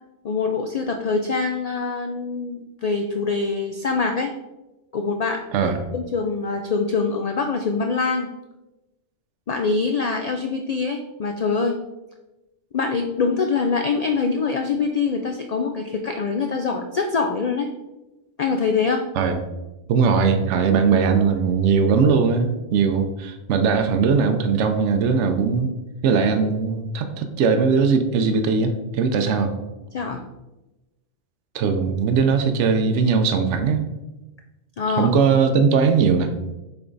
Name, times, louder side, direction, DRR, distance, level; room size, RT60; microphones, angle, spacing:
voice 1, 0.2-4.3 4.9-8.3 9.5-11.8 12.7-17.7 18.4-19.0 29.9-30.2 34.8-35.2, left 4 dB, 80° left, 4 dB, 0.3 m, -24 dB
voice 2, 5.5-5.8 19.2-19.4 19.9-25.7 26.0-29.5 31.5-33.8 34.9-36.3, right 5 dB, 75° right, 7 dB, 0.9 m, -20 dB
6.9 x 3.5 x 3.9 m, 1.0 s
omnidirectional pair, 1.2 m